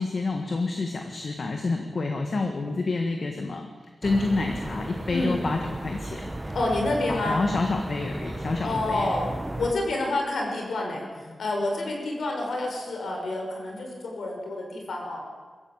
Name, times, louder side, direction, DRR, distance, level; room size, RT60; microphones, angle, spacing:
voice 1, 0.0-3.7 4.0-6.5 7.2-9.1 11.3-11.4, left 3 dB, 50° left, 3 dB, 1.7 m, -28 dB
sound 1, 4.0-9.7, right 1 dB, 15° right, 1.0 m, -35 dB
voice 2, 6.5-7.4 8.6-9.3 9.6-15.2, left 2 dB, 80° left, 1 dB, 5.9 m, -28 dB
21.5 x 14.5 x 8.9 m, 1.5 s
wide cardioid pair, 175°, 0 cm